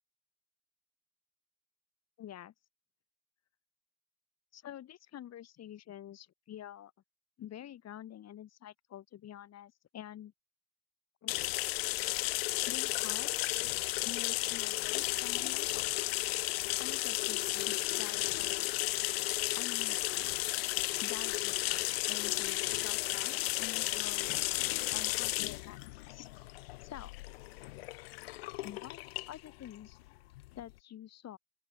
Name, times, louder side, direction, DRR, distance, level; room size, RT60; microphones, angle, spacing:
voice 1, 2.2-2.5 4.5-6.9 7.4-10.3 11.2-11.3 12.7-13.3 14.0-16.1 16.8-18.7 19.5-20.3 21.0-25.8 26.1-26.3 26.8-27.1 28.6-29.0 29.3-30.0 30.6-31.4, left 11 dB, 55° left, 3.9 m, -48 dB
sound 1, 11.3-30.7, left 20 dB, 80° left, 1.0 m, -34 dB
open air
figure-of-eight pair, 45°, 30 cm